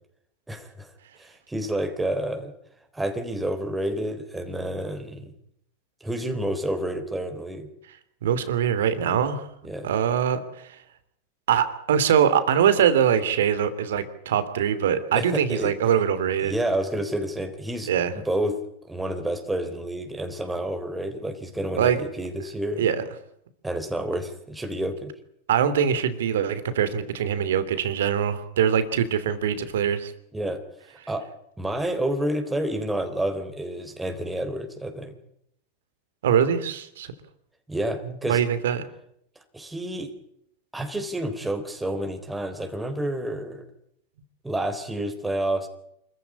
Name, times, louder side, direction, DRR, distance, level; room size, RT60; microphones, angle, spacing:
voice 1, 0.5-0.9 1.2-2.5 2.9-5.3 6.0-7.7 9.6-9.9 15.1-15.7 16.4-18.6 18.8-22.8 23.6-25.1 30.3-30.6 31.1-31.3 31.6-35.1 37.7-38.4 39.5-40.1 40.7-43.6 44.4-45.7, right 1 dB, 10° right, 6 dB, 3.9 m, -29 dB
voice 2, 8.2-9.5 9.8-10.4 11.5-16.5 17.9-18.1 21.8-22.0 22.8-23.0 25.5-30.1 36.2-37.1 38.3-38.8, right 8 dB, 75° right, 13 dB, 2.9 m, -23 dB
26.0 x 15.0 x 9.8 m, 0.74 s
hypercardioid pair, 105°, 0 cm